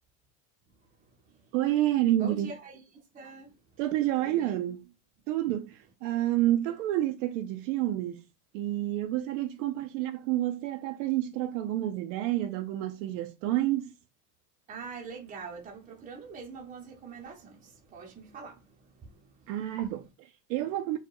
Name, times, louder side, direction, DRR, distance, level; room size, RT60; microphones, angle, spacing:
voice 1, 1.0-1.5 2.1-3.5 4.2-4.6 14.7-19.5, right 4 dB, 15° right, 0.6 m, -44 dB
voice 2, 1.5-2.5 3.8-4.8 5.3-8.2 8.5-13.9 19.5-21.0, right 14 dB, 55° right, 0.6 m, -29 dB
4.6 x 2.2 x 4.7 m
supercardioid pair, 160°, 47 cm